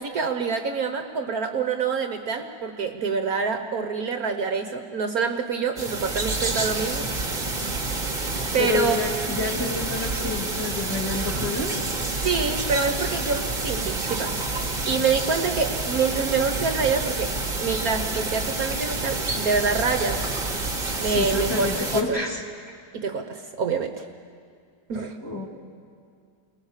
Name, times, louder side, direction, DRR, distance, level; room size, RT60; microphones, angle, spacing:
voice 1, 0.0-7.1 8.5-8.9 12.2-17.3 17.6-20.2 21.0-21.7 21.9-22.2 22.9-24.0 24.9-25.2, right 5 dB, 60° right, 6 dB, 1.4 m, -26 dB
sound 1, 5.8-22.0, right 3 dB, 25° right, 1.9 m, -28 dB
voice 2, 8.6-11.8 21.0-22.4 25.2-25.5, left 3 dB, 15° left, -1 dB, 2.2 m, -28 dB
29.5 x 20.0 x 7.4 m, 2.2 s
omnidirectional pair, 1.9 m